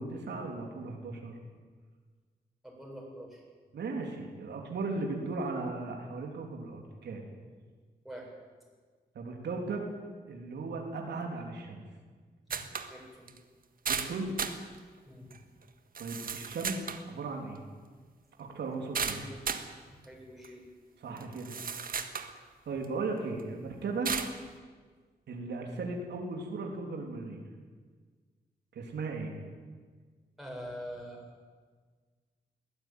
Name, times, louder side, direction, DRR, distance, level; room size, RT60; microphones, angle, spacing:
voice 1, 0.0-1.4 3.7-7.2 9.1-9.8 10.3-11.8 13.9-14.3 16.0-17.6 18.4-19.2 21.0-21.5 22.7-24.1 25.3-27.4 28.7-29.3, right 3 dB, 85° right, 2 dB, 3.3 m, -37 dB
voice 2, 2.6-3.4 8.0-8.3 12.5-12.6 12.9-13.3 15.1-15.4 19.0-19.2 19.9-20.7 30.4-31.2, equal, ahead, -2 dB, 7.6 m, -45 dB
sound 1, 12.5-12.9 13.3-13.4 13.9-14.6 15.3-15.4 16.0-17.0 18.9-19.7 20.4-20.5 21.2-22.3 22.8-22.9 24.1-24.4, right 6 dB, 55° right, 1.7 m, -34 dB
21.5 x 15.5 x 9.4 m, 1.5 s
wide cardioid pair, 105°, 17 cm